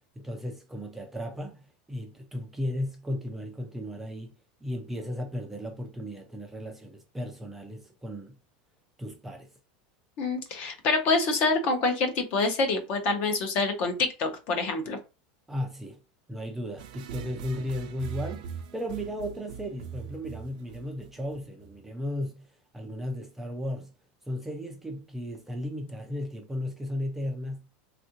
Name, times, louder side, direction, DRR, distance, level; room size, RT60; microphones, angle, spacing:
voice 1, 0.2-1.6 1.9-4.3 4.6-8.4 9.0-9.5 15.5-16.0 16.3-23.9 24.3-27.7, left 1 dB, 5° right, 0.4 m, -35 dB
voice 2, 10.2-15.0, left 3 dB, 40° left, 0.7 m, -26 dB
sound 1, 16.8-21.8, right 7 dB, 75° right, 0.5 m, -41 dB
3.5 x 2.4 x 2.8 m
supercardioid pair, 165°, 4 cm